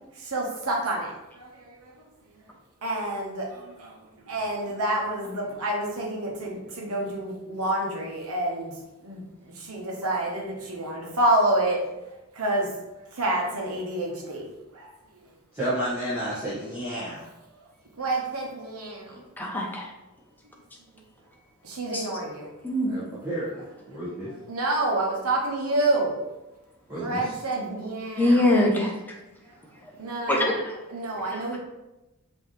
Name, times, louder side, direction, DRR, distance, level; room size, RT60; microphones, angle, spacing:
voice 1, 0.2-1.9 2.8-3.9 4.3-8.7 9.0-9.2 9.6-11.8 12.3-12.7 13.1-14.4 14.7-14.9 18.0-19.2 21.6-22.5 24.5-26.2 27.0-28.5 30.0-30.5 30.9-31.6, right 1 dB, 75° right, -1 dB, 1.2 m, -28 dB
voice 2, 15.5-17.2 22.9-24.3 26.9-27.4, right 1 dB, 10° right, -12 dB, 1.5 m, -31 dB
voice 3, 19.4-19.9 21.9-22.0 22.6-22.9 28.2-28.9 30.3-30.8 31.3-31.6, left 1 dB, 10° left, -1 dB, 0.8 m, -23 dB
5.5 x 3.0 x 3.2 m, 0.98 s
head